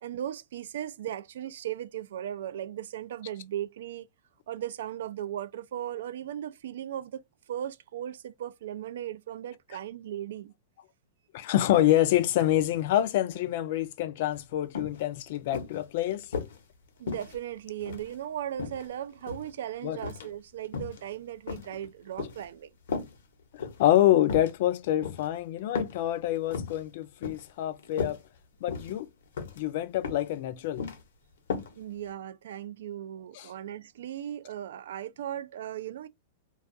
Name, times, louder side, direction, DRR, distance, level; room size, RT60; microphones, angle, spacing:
voice 1, 0.0-4.1 4.5-10.5 17.0-22.7 31.7-36.1, right 11 dB, 75° right, 0.3 m, -37 dB
voice 2, 11.3-16.3 19.8-20.0 23.6-28.2 28.6-29.1 29.6-30.8 33.4-33.5, left 13 dB, 55° left, 0.3 m, -26 dB
sound 1, 14.3-14.4 14.7-15.0 15.5-16.6 17.1-18.1 18.6-19.5 20.0-20.3 20.6-21.0 21.5-22.4 22.9-23.1 23.6-23.8 24.2-24.5 25.0-25.3 25.7-26.0 26.3-26.8 27.2-27.5 27.8-28.2 28.7-29.0 29.4-29.6 30.0-30.3 30.6-31.0 31.5-31.7 32.1-32.2, left 5 dB, 85° left, 0.8 m, -35 dB
2.3 x 2.3 x 2.6 m
supercardioid pair, 160°, 0 cm